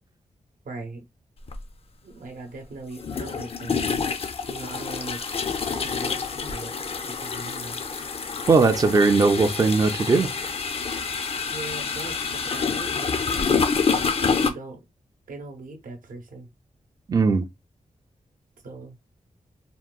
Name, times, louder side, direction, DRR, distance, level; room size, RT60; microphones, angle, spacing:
voice 1, 0.6-1.0 2.0-4.1 4.5-5.2 5.6-6.7 7.1-7.8 11.5-14.8 15.3-16.5 18.6-19.0, right 3 dB, 85° right, 0.8 m, -39 dB
sound 1, 1.5-1.6 3.0-14.5, left 5 dB, 45° left, 0.4 m, -27 dB
voice 2, 8.5-10.3 17.1-17.5, right 4 dB, 25° right, 0.3 m, -19 dB
3.7 x 2.2 x 2.3 m
wide cardioid pair, 115°, 14 cm